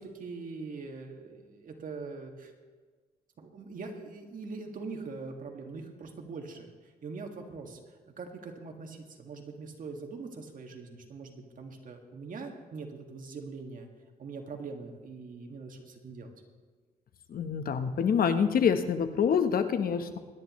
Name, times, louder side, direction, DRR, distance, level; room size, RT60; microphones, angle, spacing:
voice 1, 0.0-2.5 3.4-6.7 7.0-7.8 8.1-13.9 14.2-16.3, right 4 dB, 55° right, 3 dB, 2.0 m, -42 dB
voice 2, 17.3-20.2, left 7 dB, 65° left, 8 dB, 1.1 m, -26 dB
23.5 x 10.5 x 3.2 m, 1.5 s
cardioid pair, 80°, 16 cm